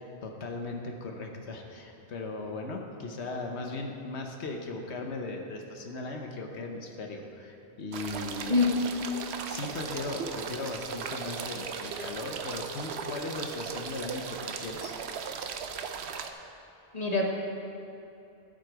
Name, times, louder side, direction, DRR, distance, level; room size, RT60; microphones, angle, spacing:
voice 1, 0.0-8.6 9.5-14.9, left 3 dB, 85° left, 2 dB, 1.3 m, -38 dB
sound 1, 7.9-16.3, right 6 dB, 80° right, 0.9 m, -37 dB
voice 2, 8.5-8.8 16.9-17.3, left 3 dB, 40° left, 0 dB, 1.2 m, -25 dB
13.0 x 7.9 x 4.7 m, 2.8 s
omnidirectional pair, 1.1 m